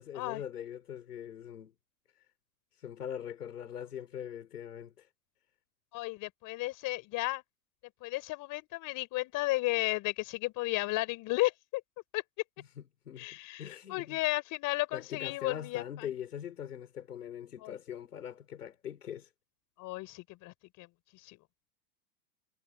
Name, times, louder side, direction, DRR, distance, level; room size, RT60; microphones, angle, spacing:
voice 1, 0.0-1.7 2.8-5.1 12.6-13.3 13.6-14.2 14.9-19.3, left 9 dB, 90° left, 3.8 m, -42 dB
voice 2, 5.9-7.4 8.0-11.8 12.1-12.2 13.2-16.1 17.6-17.8 19.8-20.9 21.2-21.4, left 20 dB, 45° left, 3.6 m, -34 dB
hypercardioid pair, 110°, 45 cm